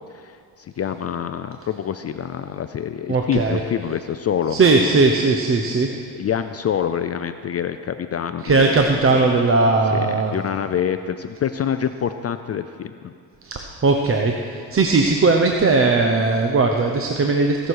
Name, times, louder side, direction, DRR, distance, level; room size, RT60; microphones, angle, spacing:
voice 1, 0.1-4.6 5.9-8.9 9.9-13.1, left 8 dB, 35° left, 10 dB, 0.4 m, -26 dB
voice 2, 3.1-3.6 4.5-5.9 8.4-10.4 13.4-17.7, right 3 dB, 30° right, 3 dB, 0.9 m, -18 dB
17.5 x 6.5 x 4.7 m, 2.3 s
supercardioid pair, 80°, 44 cm